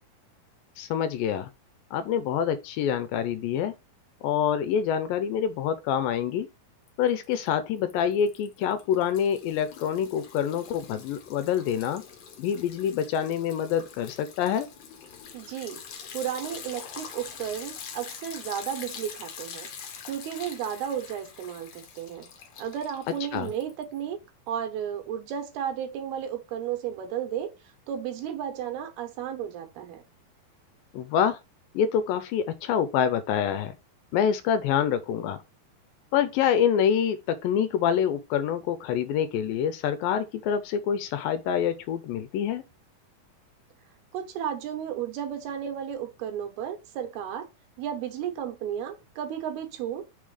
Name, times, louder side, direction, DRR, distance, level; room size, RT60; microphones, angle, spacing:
voice 1, 0.8-1.5 1.9-3.7 4.2-6.5 7.0-12.0 12.4-14.7 23.3-23.5 30.9-31.4 31.7-33.7 34.1-35.4 36.1-42.6, left 8 dB, 80° left, 2.2 m, -26 dB
Liquid, 6.9-7.5 7.8-24.0, left 7 dB, 60° left, 1.8 m, -44 dB
voice 2, 15.3-15.8 16.1-19.7 20.1-22.3 22.6-24.2 24.5-27.5 27.9-30.0 44.1-47.5 47.8-50.0, right 9 dB, 85° right, 3.1 m, -33 dB
6.2 x 3.7 x 4.8 m
omnidirectional pair, 4.4 m